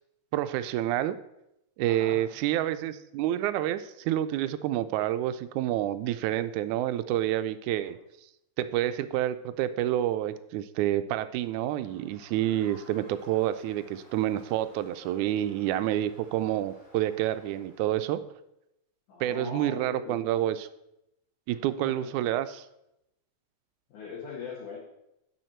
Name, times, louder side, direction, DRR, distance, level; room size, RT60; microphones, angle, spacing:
voice 1, 0.3-1.2 1.8-8.0 8.6-18.2 19.2-20.7 21.5-22.7, right 12 dB, 90° right, 12 dB, 2.0 m, -28 dB
voice 2, 1.8-2.2 7.8-7.9 19.1-20.2 21.8-22.1 23.9-24.8, left 5 dB, 90° left, -5 dB, 3.0 m, -40 dB
Crowd, 11.4-18.2, equal, 10° left, 3.6 m, -56 dB
9.1 x 6.5 x 4.4 m, 0.84 s
omnidirectional pair, 3.4 m